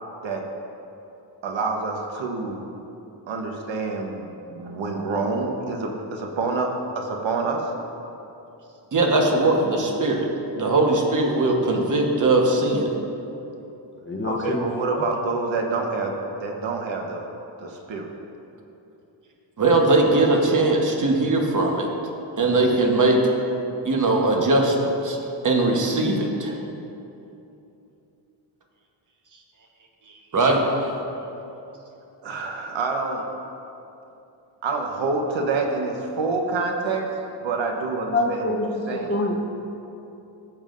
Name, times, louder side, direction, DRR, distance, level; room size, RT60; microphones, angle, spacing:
voice 1, 1.4-2.7 3.3-7.7 14.2-17.3 17.6-18.1 22.5-22.6 32.2-33.3 34.6-37.1 37.4-38.5 38.9-39.1, right 3 dB, 70° right, 2 dB, 1.1 m, -27 dB
voice 2, 8.9-10.3 10.6-12.9 19.6-21.9 22.4-23.2 23.8-25.2 25.4-26.6 30.3-30.9, right 2 dB, 40° right, 1 dB, 1.1 m, -20 dB
voice 3, 14.0-15.0 38.1-39.4, left 1 dB, 25° left, 0 dB, 0.8 m, -26 dB
14.5 x 7.2 x 2.5 m, 2.9 s
wide cardioid pair, 135°, 47 cm